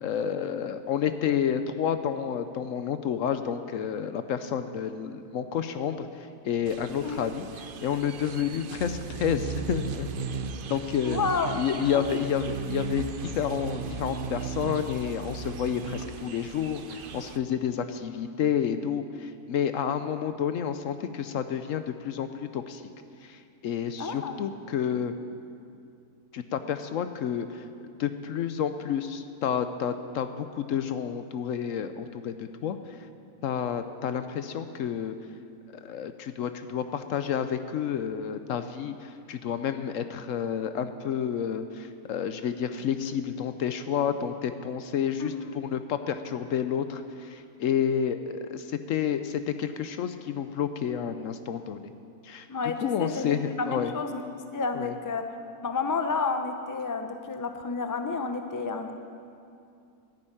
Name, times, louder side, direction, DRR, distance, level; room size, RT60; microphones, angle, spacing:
voice 1, 0.0-10.1 10.7-11.2 11.5-22.8 23.2-25.1 26.3-27.7 28.0-32.8 33.4-35.2 35.7-51.8 52.2-52.5 52.8-53.9 54.7-55.0, left 8 dB, 65° left, 10 dB, 0.9 m, -30 dB
sound 1, 6.7-17.4, right 6 dB, 60° right, 0.5 m, -36 dB
voice 2, 11.0-11.6 11.9-12.0 24.0-24.4 45.2-45.6 52.5-55.2 55.6-58.9, left 4 dB, 25° left, 6 dB, 0.4 m, -30 dB
11.0 x 9.8 x 8.9 m, 2.5 s
omnidirectional pair, 1.6 m